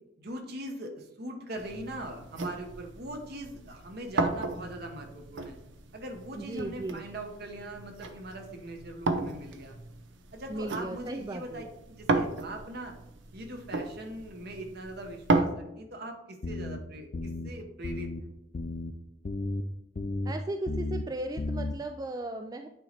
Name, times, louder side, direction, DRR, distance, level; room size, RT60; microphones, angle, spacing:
voice 1, 0.2-5.6 5.9-9.7 10.3-13.0 13.3-18.3, right 1 dB, 60° right, 3 dB, 1.2 m, -41 dB
sound 1, 1.6-15.4, right 3 dB, 80° right, 0.7 m, -34 dB
voice 2, 6.4-7.0 10.5-11.7 20.2-22.7, right 2 dB, 20° right, 6 dB, 0.3 m, -36 dB
sound 2, 16.4-16.8 17.1-17.5 17.8-18.2 18.5-18.9 19.2-19.6 20.0-20.3 20.7-21.0 21.4-21.7, left 2 dB, 45° left, 0.5 m, -33 dB
9.2 x 3.1 x 4.1 m, 0.88 s
head